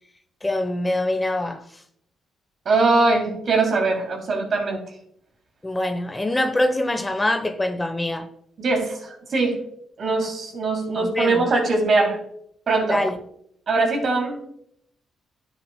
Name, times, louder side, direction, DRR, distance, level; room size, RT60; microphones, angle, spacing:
voice 1, 0.4-1.6 5.6-8.3 11.0-11.5 12.8-13.2, left 1 dB, 20° left, 0.9 m, -24 dB
voice 2, 2.6-4.8 8.6-9.6 10.0-12.2 12.7-13.0 13.7-14.4, right 3 dB, 60° right, 2.9 m, -21 dB
12.0 x 7.4 x 2.2 m
supercardioid pair, 55°, 0 cm